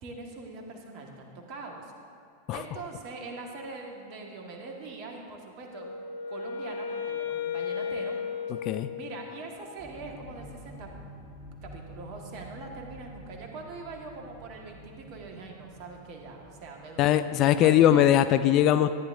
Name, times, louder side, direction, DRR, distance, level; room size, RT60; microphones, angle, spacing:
voice 1, 0.0-1.9 2.5-5.9 6.3-8.2 8.9-10.9 11.6-17.1 17.6-18.1, right 3 dB, 40° right, 1 dB, 1.6 m, -42 dB
Wind instrument woodwind instrument, 5.7-9.6, left 6 dB, 55° left, 0.8 m, -35 dB
sound 1, 9.8-17.1, equal, 5° right, 1.4 m, -48 dB
voice 2, 17.0-18.9, left 11 dB, 35° left, 12 dB, 0.3 m, -21 dB
14.0 x 9.9 x 2.6 m, 2.6 s
figure-of-eight pair, 90°, 0 cm